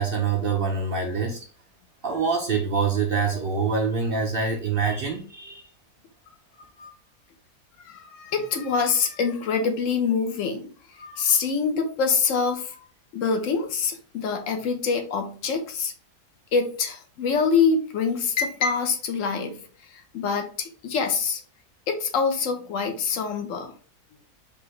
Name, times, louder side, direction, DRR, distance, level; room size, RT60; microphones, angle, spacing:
voice 1, 0.0-1.4 2.0-5.6, right 5 dB, 60° right, 2 dB, 0.6 m, -25 dB
voice 2, 7.9-10.7 11.0-12.8 13.1-15.9 16.5-19.6 20.1-21.4 21.9-23.7, left 5 dB, 60° left, 5 dB, 1.0 m, -25 dB
4.8 x 2.5 x 3.1 m, 0.42 s
omnidirectional pair, 1.6 m